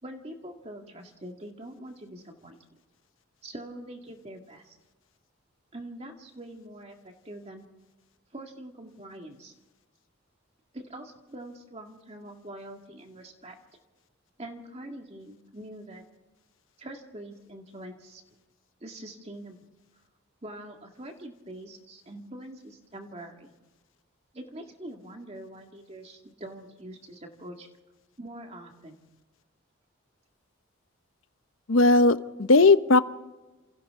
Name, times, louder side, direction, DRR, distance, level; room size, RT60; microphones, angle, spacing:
voice 1, 0.0-2.6 3.4-4.8 5.7-7.7 8.3-9.5 10.7-13.6 14.4-16.0 16.8-18.2 18.8-19.7 20.4-23.5 24.3-27.7 28.2-29.0, right 1 dB, 30° right, 3 dB, 2.1 m, -44 dB
voice 2, 31.7-33.0, left 3 dB, 70° left, 12 dB, 0.9 m, -18 dB
28.5 x 28.0 x 3.7 m, 1.1 s
head